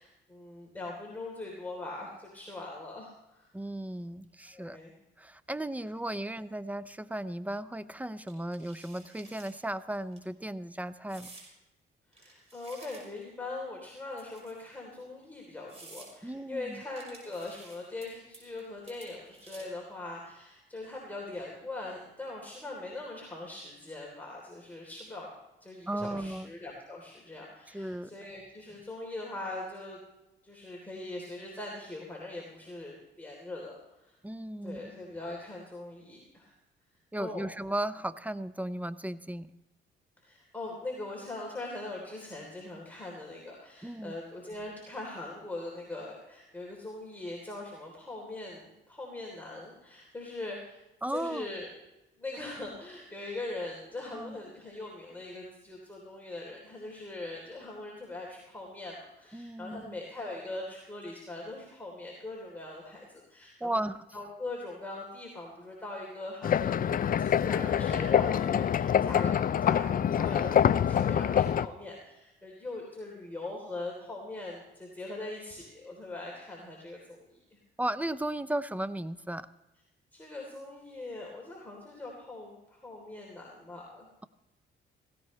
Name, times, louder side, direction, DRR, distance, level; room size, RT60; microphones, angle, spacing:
voice 1, 0.0-3.5 4.5-4.9 12.1-25.3 25.6-30.0 30.4-34.2 34.6-36.6 37.2-37.5 40.2-50.8 51.1-51.7 52.2-63.8 64.1-77.6 80.1-84.1, left 2 dB, 10° left, -2 dB, 3.4 m, -41 dB
voice 2, 3.5-4.8 5.2-11.3 16.2-16.8 25.9-26.5 27.7-28.1 34.2-34.9 37.1-39.5 43.8-44.1 51.0-51.5 54.1-54.4 59.3-60.0 63.6-64.0 77.8-79.5, right 1 dB, 5° right, 14 dB, 0.6 m, -35 dB
sound 1, 8.3-9.5 9.9-10.2 11.1-11.5 12.1-13.3 14.1-14.7 15.2-15.3 15.7-16.1 17.0-18.1 18.3-18.6 18.9-19.8, right 3 dB, 30° right, 5.5 m, -52 dB
sound 2, 66.4-71.7, left 9 dB, 45° left, 0.5 m, -25 dB
17.5 x 16.5 x 3.2 m, 0.94 s
cardioid pair, 90°, 20 cm